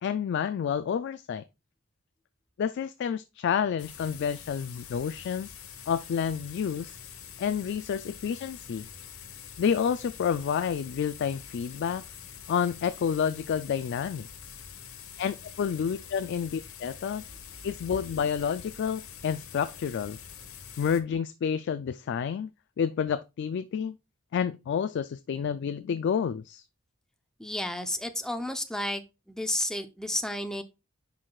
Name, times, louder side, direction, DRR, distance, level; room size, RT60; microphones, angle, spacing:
voice 1, 0.0-1.4 2.6-5.5 5.9-7.0 7.4-8.9 9.6-12.0 12.5-14.3 15.2-17.2 17.6-20.2 20.8-22.5 22.8-23.9 24.3-26.6, left 7 dB, 55° left, 0.3 m, -29 dB
sound 1, 3.8-21.0, left 8 dB, 85° left, 1.0 m, -46 dB
voice 2, 27.4-29.0 29.3-30.6, left 1 dB, 5° left, 0.6 m, -31 dB
10.0 x 4.7 x 2.3 m
head